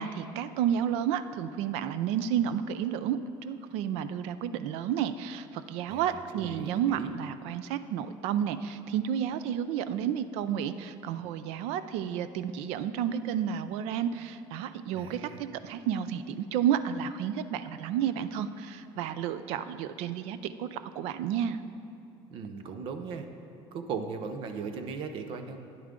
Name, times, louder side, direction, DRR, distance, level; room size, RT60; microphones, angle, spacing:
voice 1, 0.0-21.6, right 9 dB, 80° right, 12 dB, 0.5 m, -31 dB
voice 2, 5.9-7.1 14.9-15.4 22.3-23.3 23.7-25.6, right 5 dB, 55° right, 7 dB, 0.8 m, -38 dB
13.0 x 10.0 x 3.8 m, 2.7 s
cardioid pair, 165°, 11 cm